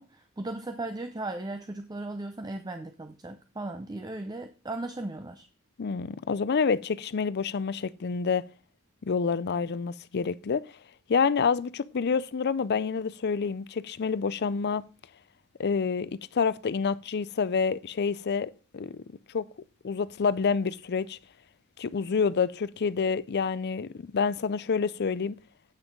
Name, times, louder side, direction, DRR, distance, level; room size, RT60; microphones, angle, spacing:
voice 1, 0.0-5.5, right 2 dB, 20° right, 0.6 m, -37 dB
voice 2, 5.8-8.4 9.0-10.7 11.1-14.8 15.6-19.0 19.3-19.5 19.8-21.2 21.8-25.4, left 5 dB, 50° left, 0.5 m, -28 dB
8.8 x 6.1 x 5.2 m
head